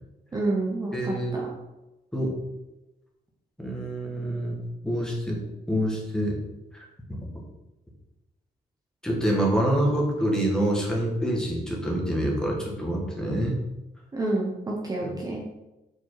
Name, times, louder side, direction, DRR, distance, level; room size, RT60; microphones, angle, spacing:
voice 1, 0.3-1.4 14.1-15.4, right 2 dB, 20° right, -2 dB, 0.8 m, -28 dB
voice 2, 0.9-1.4 2.1-2.3 3.6-4.6 4.8-5.4 5.7-6.4 6.7-7.3 9.0-13.6 15.0-15.1, right 1 dB, 5° left, -2 dB, 1.5 m, -26 dB
5.4 x 4.9 x 4.7 m, 1.0 s
wide cardioid pair, 165°, 17 cm